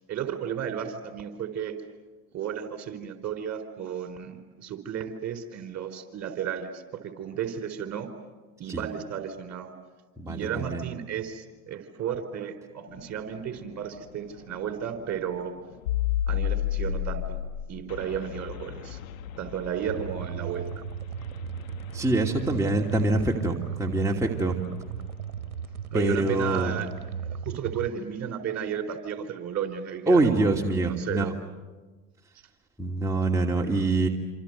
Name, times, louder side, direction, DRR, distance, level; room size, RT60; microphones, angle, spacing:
voice 1, 0.1-1.7 2.3-8.1 8.6-9.7 10.3-15.5 16.3-17.4 17.7-19.0 19.4-20.7 25.9-26.9 27.2-30.5 30.8-31.3, right 8 dB, 40° right, 7 dB, 4.4 m, -33 dB
voice 2, 10.2-10.8 21.9-24.5 25.9-26.7 30.1-31.3 32.8-34.1, right 2 dB, 5° right, -1 dB, 2.7 m, -25 dB
sound 1, 12.9-25.6, left 11 dB, 75° left, 1.9 m, -35 dB
sound 2, 19.9-27.9, right 7 dB, 90° right, 1.0 m, -36 dB
27.5 x 26.5 x 8.1 m, 1.2 s
hypercardioid pair, 80°, 42 cm